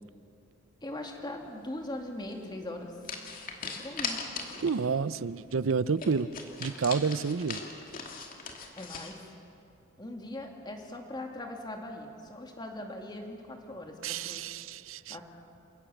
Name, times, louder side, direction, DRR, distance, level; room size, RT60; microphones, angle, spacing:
voice 1, 0.8-3.0 3.8-4.2 8.8-9.2 10.0-14.5 15.1-15.3, left 1 dB, 20° left, 2 dB, 2.4 m, -40 dB
sound 1, 2.3-2.5 3.0-4.8 5.1-5.2 5.5-5.6 6.0-9.1, left 5 dB, 45° left, 2.5 m, -39 dB
voice 2, 4.6-6.3 6.6-7.6 14.0-15.2, right 5 dB, 70° right, 17 dB, 0.6 m, -29 dB
28.5 x 18.0 x 7.2 m, 2.6 s
head